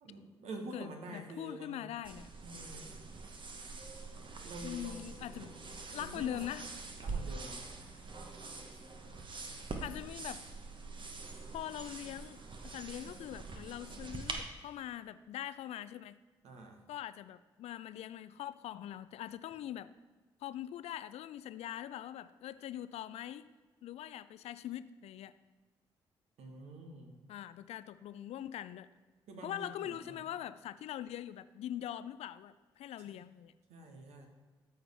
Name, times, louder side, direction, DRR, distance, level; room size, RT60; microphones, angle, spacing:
voice 1, 0.0-1.9 2.4-2.9 4.4-5.5 5.9-6.4 7.0-7.7 16.4-16.8 26.4-27.2 29.3-30.2 33.1-33.2 33.7-34.3, right 2 dB, 65° right, 3 dB, 1.4 m, -47 dB
voice 2, 0.7-2.3 4.6-5.5 5.9-6.7 9.8-10.4 11.5-16.2 16.9-19.9 20.4-23.5 23.8-25.3 27.3-28.9 29.4-33.5, left 11 dB, 60° left, 15 dB, 0.4 m, -42 dB
sound 1, 2.0-14.4, right 3 dB, 45° right, 1.2 m, -44 dB
13.5 x 4.6 x 3.5 m, 1.3 s
hypercardioid pair, 40°, 12 cm